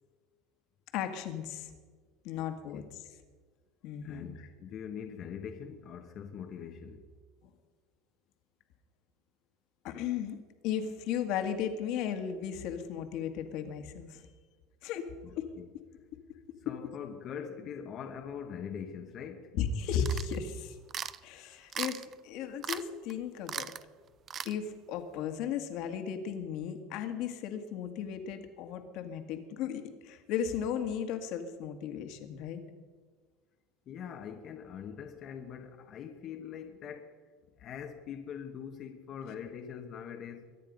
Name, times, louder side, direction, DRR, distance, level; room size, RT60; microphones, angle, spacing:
voice 1, 0.9-1.7 2.2-3.0 3.8-4.5 9.8-10.4 10.6-14.2 14.8-15.1 15.4-15.5 19.5-20.8 21.2-23.7 24.4-32.6, left 7 dB, 60° left, 1.8 m, -35 dB
voice 2, 2.3-2.9 4.0-7.0 15.2-15.7 16.6-19.5 33.9-37.1 37.6-40.4, left 7 dB, 40° left, 1.2 m, -43 dB
sound 1, 20.1-20.4 20.9-21.2 21.7-22.1 22.6-22.8 23.1-23.2 23.5-23.8 24.3-24.5, right 8 dB, 30° right, 0.5 m, -37 dB
23.0 x 9.7 x 5.3 m
supercardioid pair, 135°, 0 cm